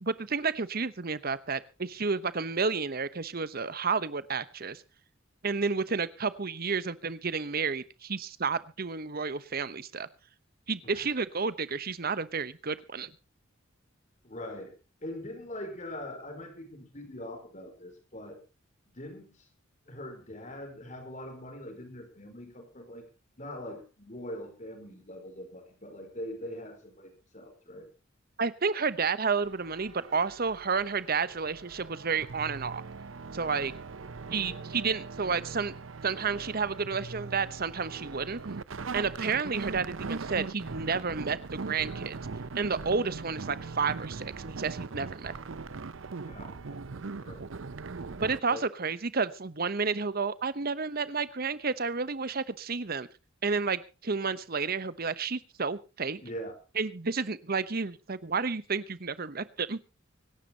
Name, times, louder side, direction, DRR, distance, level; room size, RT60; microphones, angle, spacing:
voice 1, 0.0-4.8 5.4-10.1 10.7-13.1 28.4-32.8 33.3-33.7 34.3-35.7 36.0-38.4 38.9-42.2 42.5-45.3 48.1-53.1 53.4-56.2 56.8-59.8, right 5 dB, 50° right, 15 dB, 1.0 m, -31 dB
voice 2, 14.2-14.7 15.0-18.4 18.9-19.3 19.9-23.1 23.4-27.9 34.3-34.6 46.3-47.5 48.5-48.6 56.2-56.5, left 1 dB, 40° left, 6 dB, 4.6 m, -42 dB
sound 1, 29.4-48.4, right 4 dB, 75° right, 0.7 m, -40 dB
25.0 x 12.0 x 2.9 m, 0.31 s
head